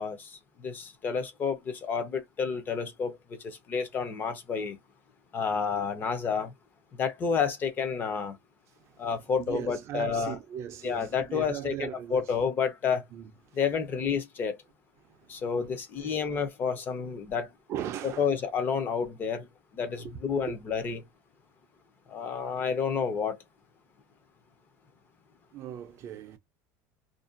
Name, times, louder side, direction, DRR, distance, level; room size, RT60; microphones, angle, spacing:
voice 1, 0.0-4.8 5.3-6.5 6.9-8.4 9.0-10.4 10.8-13.0 13.6-14.6 15.3-17.5 18.2-19.5 19.7-21.0 22.1-23.4, left 6 dB, 25° left, 0.4 m, -30 dB
voice 2, 9.4-12.4 13.1-13.3 15.1-15.3 15.5-15.7 16.0-16.2 17.7-18.3 20.0-20.1 20.4-20.6 25.5-26.4, right 10 dB, 35° right, 0.3 m, -39 dB
2.5 x 2.1 x 2.4 m
cardioid pair, 175°, 8 cm